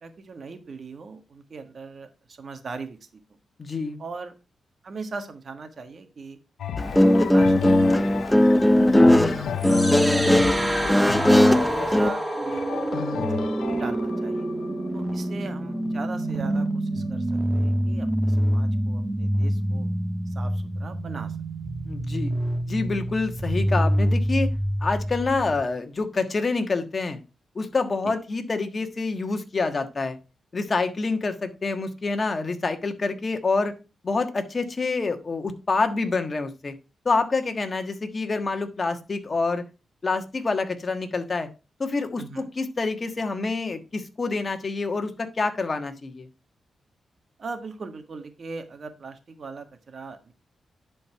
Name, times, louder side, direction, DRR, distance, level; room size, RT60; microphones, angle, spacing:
voice 1, 0.0-3.1 4.0-4.3 4.8-6.4 6.8-7.9 8.3-11.0 11.5-14.5 14.9-19.9 20.3-21.4 28.0-28.1 42.2-42.5 47.4-50.3, right 4 dB, 55° right, 8 dB, 1.6 m, -40 dB
voice 2, 3.6-4.0 21.9-22.3 22.7-24.5 24.8-27.2 27.5-30.2 30.5-33.7 34.0-36.7 37.0-39.6 40.0-41.5 41.8-42.2 42.6-46.3, left 3 dB, 40° left, 7 dB, 1.4 m, -27 dB
sound 1, 6.6-16.4 17.0-17.1, left 9 dB, 85° left, 0.5 m, -33 dB
Guitar, 6.8-12.1, left 1 dB, 5° left, 0.5 m, -18 dB
sound 2, 9.6-25.6, right 1 dB, 20° right, 1.3 m, -27 dB
10.5 x 4.5 x 4.5 m, 0.30 s
cardioid pair, 75°, 0 cm